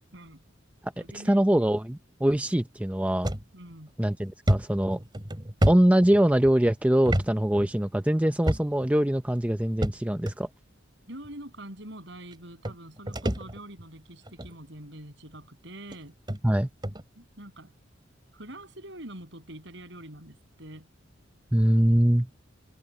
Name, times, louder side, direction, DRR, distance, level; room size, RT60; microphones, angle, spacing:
voice 1, 0.1-0.4 1.0-1.5 3.5-3.9 11.1-16.2 17.2-17.7 18.3-20.9, right 1 dB, 65° right, 7.4 m, -45 dB
voice 2, 1.1-3.3 4.0-5.0 5.7-10.5 16.4-16.7 21.5-22.3, right 1 dB, 5° right, 0.6 m, -23 dB
sound 1, 3.2-3.4 3.9-4.0 4.5-6.5 7.0-7.3 7.6-7.7 8.4-8.9 9.8-10.3 11.2-11.3 12.3-12.4 12.6-13.8 14.3-14.5 15.3-15.4 15.9-16.0 16.3-16.4 16.8-17.0, equal, 25° right, 2.5 m, -28 dB
head